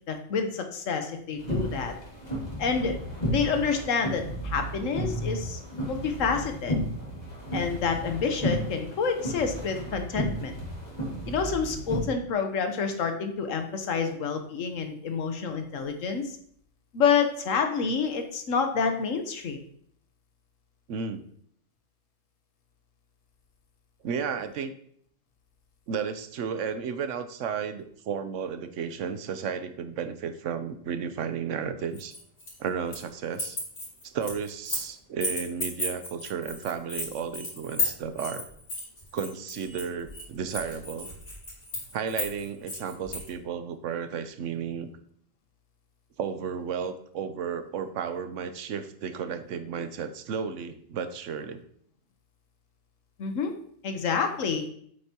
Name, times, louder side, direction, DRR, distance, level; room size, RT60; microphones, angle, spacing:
voice 1, 0.1-1.9 2.6-3.0 3.3-5.6 5.9-6.8 7.5-10.5 11.3-16.4 16.9-19.6 53.2-53.5 53.8-54.6, left 5 dB, 85° left, 6 dB, 1.4 m, -28 dB
sound 1, 1.4-12.0, equal, 35° left, 2.2 m, -33 dB
voice 2, 20.9-21.2 24.0-24.7 25.9-32.2 32.6-33.6 34.0-38.4 39.1-41.1 41.9-44.9 46.2-51.6, right 6 dB, 75° right, 10 dB, 1.0 m, -33 dB
keys rhythm, 31.9-33.1 33.3-34.9 35.2-43.3, left 2 dB, 65° left, 3.9 m, -34 dB
8.4 x 8.0 x 2.9 m, 0.63 s
omnidirectional pair, 1.3 m